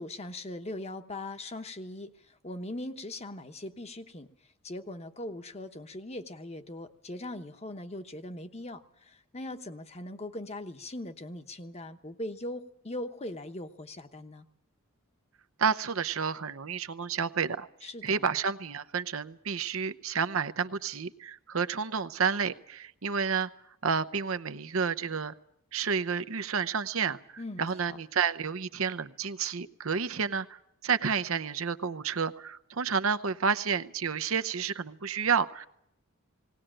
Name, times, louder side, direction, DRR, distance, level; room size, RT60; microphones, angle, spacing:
voice 1, 0.0-2.1 2.4-4.3 4.6-14.4 17.8-18.2 27.4-28.0, left 1 dB, 30° left, 8 dB, 1.1 m, -40 dB
voice 2, 15.6-23.5 23.8-25.3 25.7-35.7, right 6 dB, 65° right, 12 dB, 0.8 m, -30 dB
19.0 x 19.0 x 9.0 m, 0.76 s
head